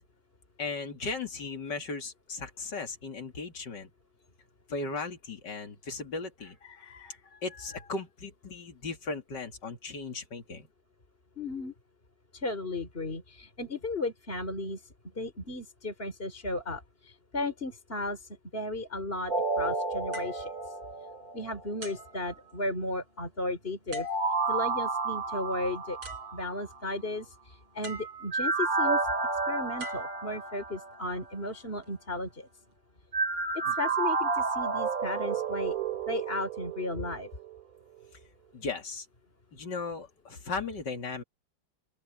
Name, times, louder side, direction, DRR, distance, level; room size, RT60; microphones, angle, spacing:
voice 1, 0.6-3.9 4.7-10.7 38.5-39.1 39.5-41.2, left 4 dB, 55° left, 3.0 m, -37 dB
voice 2, 11.4-11.7 12.3-14.8 15.1-20.5 21.3-24.1 24.5-26.0 26.3-29.0 29.5-32.5 33.5-35.8 36.1-37.3, left 2 dB, 25° left, 3.5 m, -35 dB
sound 1, 19.3-21.6 23.9-26.9 28.3-31.1 33.1-37.6 38.0-38.1, right 4 dB, 45° right, 3.1 m, -31 dB
sound 2, 20.1-21.3 21.8-23.0 23.9-24.6 25.7-25.8 26.0-26.8 27.8-28.6 29.8-30.9 31.6-31.9, right 2 dB, 90° right, 8.1 m, -46 dB
open air
omnidirectional pair, 2.2 m